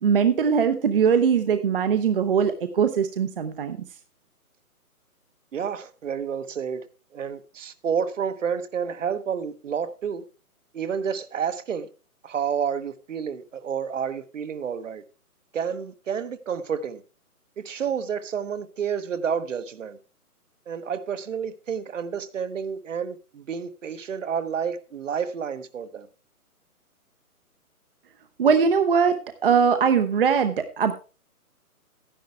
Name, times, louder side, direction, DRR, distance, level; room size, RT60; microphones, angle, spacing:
voice 1, 0.0-3.8 28.4-30.9, right 6 dB, 40° right, 0.7 m, -21 dB
voice 2, 5.5-6.8 7.1-10.2 10.7-11.9 12.2-15.0 15.5-17.0 17.6-20.0 20.7-26.1, right 7 dB, 55° right, 1.2 m, -30 dB
11.5 x 10.5 x 3.4 m
hypercardioid pair, 155°, 45 cm